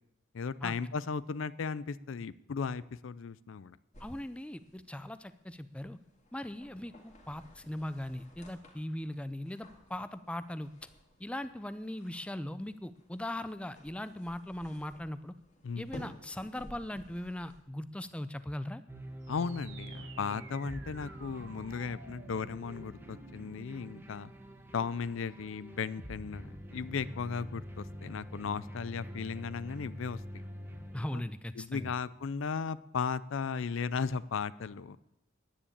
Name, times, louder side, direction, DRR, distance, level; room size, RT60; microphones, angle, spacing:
voice 1, 0.3-3.8 15.6-15.9 19.3-24.3 24.7-30.2 31.1-31.2 31.6-35.0, left 5 dB, 70° left, 18 dB, 0.4 m, -36 dB
sound 1, 3.9-17.6, equal, 35° left, 2.5 m, -55 dB
voice 2, 4.0-6.0 6.3-10.9 11.2-15.3 15.8-18.8 30.9-31.9, left 1 dB, 5° left, 13 dB, 0.4 m, -39 dB
sound 2, 18.9-31.1, equal, 10° right, 1.1 m, -46 dB
sound 3, 19.2-24.2, right 4 dB, 65° right, 1.3 m, -53 dB
10.0 x 9.8 x 8.6 m, 0.88 s
head